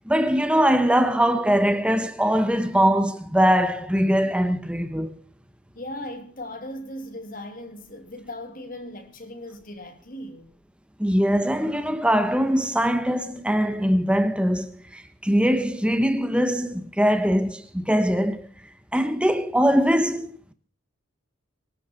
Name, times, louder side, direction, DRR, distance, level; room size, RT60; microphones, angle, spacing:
voice 1, 0.0-5.1 11.0-18.5 18.9-20.5, equal, 5° right, 1.2 m, -22 dB
voice 2, 5.7-10.5, left 1 dB, 40° left, 2.5 m, -38 dB
24.5 x 11.5 x 4.4 m
head